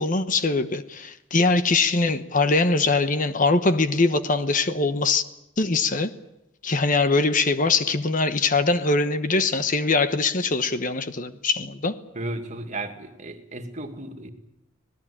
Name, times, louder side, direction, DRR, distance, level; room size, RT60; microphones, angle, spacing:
voice 1, 0.0-5.2 5.6-6.1 6.6-11.9, left 3 dB, 40° left, 1.1 m, -22 dB
voice 2, 12.1-14.3, right 2 dB, 35° right, 2.4 m, -34 dB
26.0 x 18.5 x 8.8 m
head